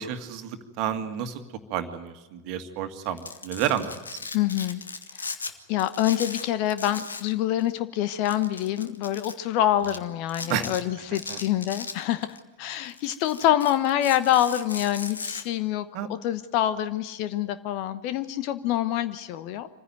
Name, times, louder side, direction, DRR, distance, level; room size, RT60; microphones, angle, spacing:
voice 1, 0.0-1.4 1.7-4.2 10.5-10.7 11.1-11.4 15.9-16.1, right 9 dB, 40° right, 7 dB, 2.0 m, -30 dB
Domestic sounds home sounds, 3.0-5.5 5.8-7.3 7.6-7.7 8.3-9.3 9.8-10.0 10.3-10.8 11.2-12.4 12.8-15.4, left 4 dB, 75° left, 1.5 m, -37 dB
voice 2, 4.3-4.8 5.2-5.3 5.7-19.7, left 12 dB, 45° left, 12 dB, 1.1 m, -26 dB
26.0 x 15.5 x 9.2 m, 1.1 s
figure-of-eight pair, 90°, 0 cm